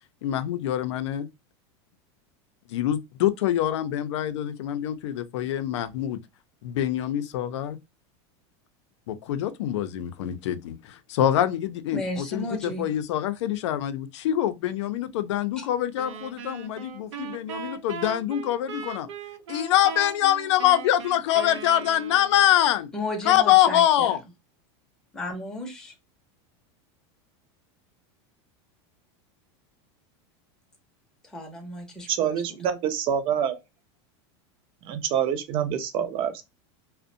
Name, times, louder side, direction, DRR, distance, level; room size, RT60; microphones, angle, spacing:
voice 1, 0.2-1.3 2.7-6.2 6.6-7.8 9.1-19.1 19.5-22.9 23.2-24.2, left 12 dB, 85° left, 0.4 m, -24 dB
voice 2, 11.9-12.9 15.6-15.7 22.9-24.2 25.1-25.9 31.2-32.4, left 1 dB, 5° left, 0.6 m, -34 dB
sound 1, 16.0-22.6, right 6 dB, 85° right, 0.7 m, -39 dB
voice 3, 32.1-33.6 34.9-36.4, right 9 dB, 40° right, 0.5 m, -26 dB
2.5 x 2.1 x 2.6 m
supercardioid pair, 145°, 15 cm